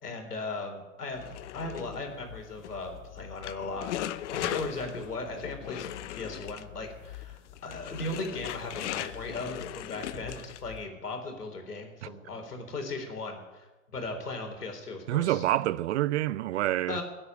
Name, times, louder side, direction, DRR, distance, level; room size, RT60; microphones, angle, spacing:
voice 1, 0.0-3.9 4.3-13.7 13.9-15.4 16.9-17.0, left 2 dB, 90° left, 3.9 m, -37 dB
sound 1, 1.1-10.8, left 13 dB, 50° left, 0.9 m, -39 dB
voice 2, 15.1-17.0, right 14 dB, 50° right, 0.5 m, -27 dB
15.5 x 8.8 x 9.3 m
hypercardioid pair, 115°, 45 cm